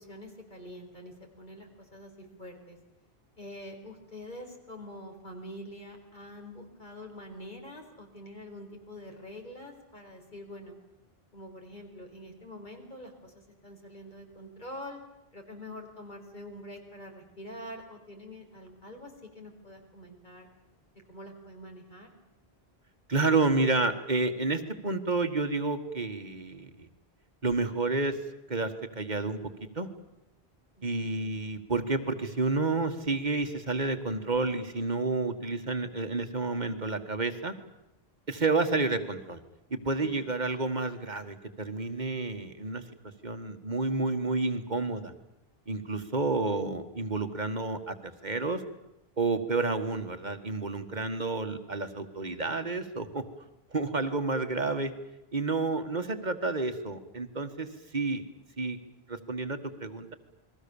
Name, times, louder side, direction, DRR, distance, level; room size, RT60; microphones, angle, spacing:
voice 1, 0.0-2.8 3.4-10.8 11.3-15.0 15.3-20.5 21.1-22.1 30.8-31.3 40.0-40.2, left 1 dB, 50° left, 2 dB, 4.8 m, -45 dB
voice 2, 23.1-26.9 27.4-28.2 28.5-29.4 29.8-29.9 30.8-37.5 38.3-39.4 39.7-42.8 43.2-45.1 45.7-48.0 48.2-48.6 49.2-53.2 53.7-54.9 55.3-57.7 57.9-58.2 58.6-58.8 59.1-60.1, right 3 dB, 45° right, 8 dB, 1.8 m, -30 dB
29.0 x 21.5 x 7.1 m, 0.91 s
omnidirectional pair, 1.0 m